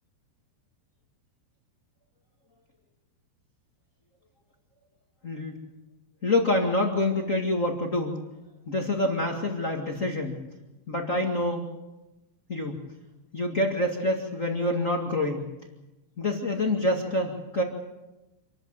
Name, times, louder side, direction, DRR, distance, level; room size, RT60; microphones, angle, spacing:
voice 1, 5.2-5.6 6.2-8.2 8.6-10.4 10.9-11.7 12.5-12.8 13.3-15.5 16.2-17.6, left 1 dB, 50° left, 1 dB, 0.9 m, -26 dB
27.0 x 13.5 x 8.9 m, 1.0 s
omnidirectional pair, 5.1 m